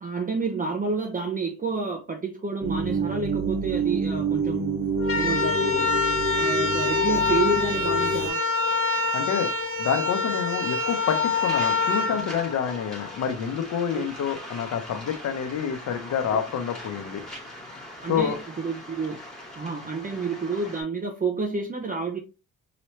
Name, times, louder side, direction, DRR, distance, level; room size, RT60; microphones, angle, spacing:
voice 1, 0.0-4.8 5.1-5.9 6.4-8.4 13.9-14.1 18.0-19.2 19.6-22.2, right 4 dB, 25° right, 0.7 m, -29 dB
sound 1, 2.6-8.3, right 2 dB, 50° right, 1.1 m, -27 dB
sound 2, 5.0-13.1, left 3 dB, 45° left, 0.9 m, -26 dB
voice 2, 9.1-9.5 9.8-17.2 18.1-18.4, left 7 dB, 70° left, 0.9 m, -28 dB
Waves surf, 10.8-20.8, left 1 dB, ahead, 2.1 m, -41 dB
4.2 x 3.0 x 3.1 m
cardioid pair, 90°, 30 cm